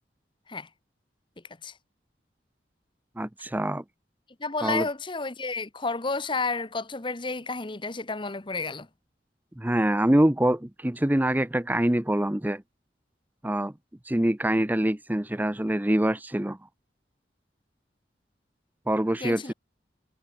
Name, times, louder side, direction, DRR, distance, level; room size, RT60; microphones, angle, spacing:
voice 1, 3.2-3.8 4.6-4.9 9.6-12.6 13.4-13.7 14.1-16.6 18.9-19.5, right 1 dB, 10° right, 0.7 m, -25 dB
voice 2, 4.4-8.9 19.2-19.5, left 3 dB, 30° left, 1.2 m, -31 dB
head